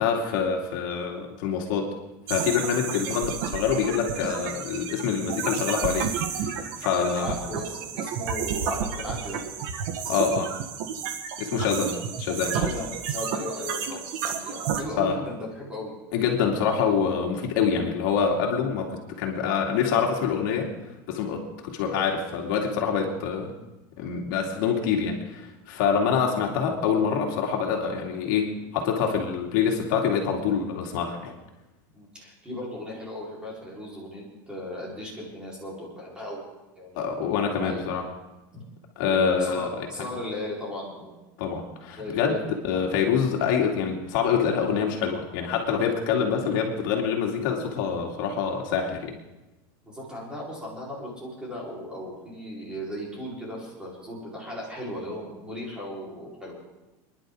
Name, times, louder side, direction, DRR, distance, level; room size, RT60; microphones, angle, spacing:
voice 1, 0.0-1.9 2.3-6.1 6.4-7.3 10.1-10.5 11.4-12.7 15.0-15.1 16.1-20.7 21.1-23.5 24.0-31.3 37.0-38.0 39.0-39.9 41.4-42.3 42.6-49.2, left 6 dB, 65° left, 0 dB, 2.6 m, -26 dB
sound 1, 2.3-14.8, right 7 dB, 65° right, 1.7 m, -31 dB
voice 2, 6.9-9.4 10.1-10.5 12.5-15.9 31.9-36.4 36.7-37.8 38.5-38.6 39.0-41.2 42.0-42.5 49.8-56.6, left 1 dB, 10° right, -5 dB, 4.5 m, -37 dB
29.0 x 11.0 x 3.9 m, 1.1 s
supercardioid pair, 165°, 11 cm